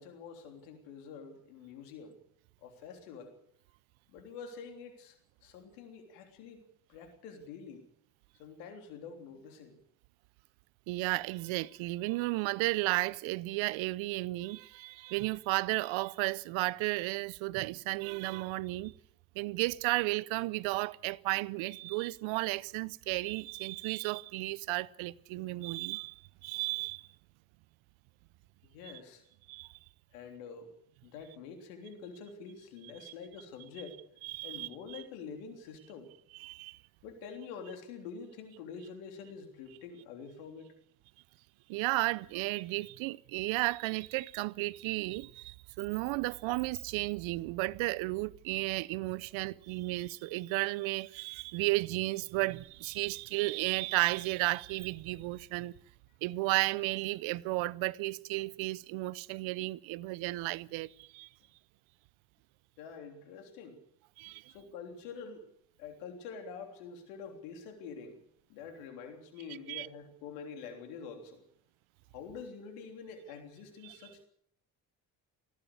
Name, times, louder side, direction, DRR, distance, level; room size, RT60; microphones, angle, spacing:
voice 1, 0.0-2.2 2.6-3.3 4.1-7.9 8.4-9.8 28.6-29.2 30.1-30.7 31.0-34.0 34.4-36.1 37.0-40.7 62.8-63.8 64.5-65.5 65.8-68.2 68.5-71.4 72.1-74.3, left 5 dB, 85° left, 3.5 m, -46 dB
voice 2, 10.9-18.9 19.3-27.1 29.5-29.8 34.2-34.7 36.4-36.8 41.7-55.7 56.2-61.3 64.2-64.4 69.7-69.9 73.8-74.0, right 21 dB, 75° right, 0.8 m, -33 dB
19.0 x 16.0 x 8.5 m
hypercardioid pair, 50°, 46 cm